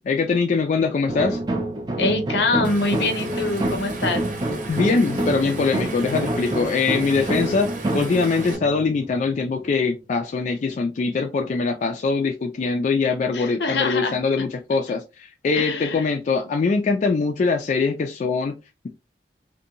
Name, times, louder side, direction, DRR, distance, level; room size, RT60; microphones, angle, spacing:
voice 1, 0.0-1.4 4.7-7.7 7.9-18.5, left 4 dB, 45° left, 0.3 m, -22 dB
sound 1, 1.1-9.9, right 1 dB, 25° right, 0.5 m, -27 dB
voice 2, 2.0-4.2 13.3-14.2 15.5-16.1, left 3 dB, 75° left, 0.7 m, -24 dB
Stream, 2.6-8.6, right 3 dB, 45° right, 0.8 m, -39 dB
2.5 x 2.2 x 2.7 m
head